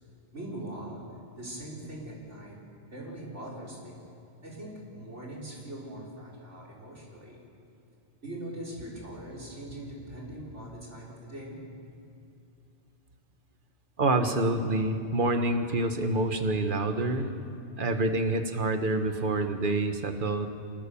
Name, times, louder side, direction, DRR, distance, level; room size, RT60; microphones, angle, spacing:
voice 1, 0.3-1.1 1.4-2.6 2.9-4.0 4.4-7.4 8.2-11.9, right 1 dB, 75° right, -3 dB, 5.2 m, -41 dB
voice 2, 14.0-17.3 17.8-20.5, right 2 dB, 45° right, 7 dB, 1.5 m, -27 dB
25.5 x 20.0 x 7.1 m, 2.6 s
omnidirectional pair, 1.2 m